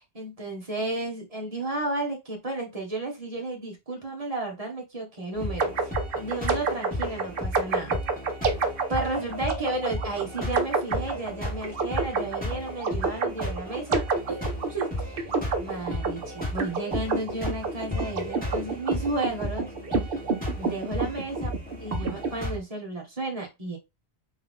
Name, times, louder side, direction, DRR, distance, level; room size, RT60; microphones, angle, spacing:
voice 1, 0.0-8.0 8.9-15.2 15.6-19.7 20.6-21.5 21.8-23.8, right 2 dB, 35° right, 1 dB, 1.5 m, -33 dB
sound 1, 5.3-22.6, left 1 dB, 10° left, 2.1 m, -35 dB
sound 2, 5.6-22.3, right 4 dB, 60° right, 1.0 m, -29 dB
3.7 x 3.5 x 3.6 m, 0.23 s
omnidirectional pair, 1.1 m